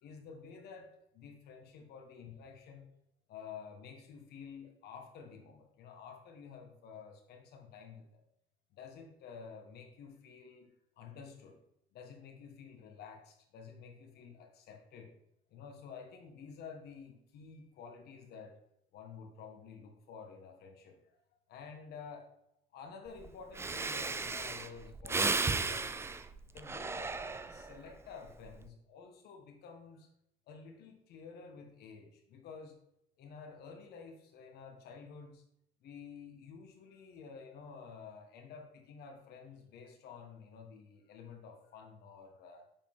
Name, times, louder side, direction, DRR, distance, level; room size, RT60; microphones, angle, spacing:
voice 1, 0.0-2.9 3.3-8.2 8.7-10.7 11.0-11.6 11.9-15.1 15.5-18.6 18.9-21.2 21.5-22.3 22.7-25.9 26.5-30.1 30.5-32.8 33.2-35.4 35.8-42.7, left 6 dB, 75° left, 3 dB, 1.4 m, -51 dB
Breathing, 23.2-23.3 23.5-27.8 28.3-28.6, right 4 dB, 15° right, 0.3 m, -35 dB
7.1 x 5.1 x 3.6 m, 0.78 s
cardioid pair, 110°, 17 cm